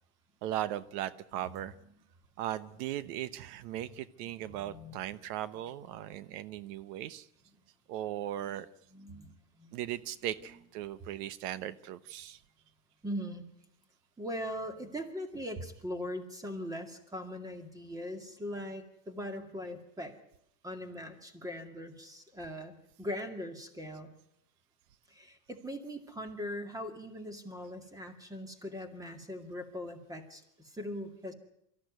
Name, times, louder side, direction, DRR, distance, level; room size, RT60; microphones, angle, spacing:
voice 1, 0.4-1.7 2.4-7.3 7.9-8.7 9.7-12.4, right 12 dB, 80° right, 16 dB, 1.1 m, -38 dB
voice 2, 4.2-5.0 8.4-8.6 8.9-9.8 13.0-13.4 14.2-20.2 20.6-24.1 25.1-31.3, equal, 5° right, 7 dB, 2.3 m, -41 dB
24.5 x 14.5 x 9.4 m, 0.76 s
supercardioid pair, 150°, 47 cm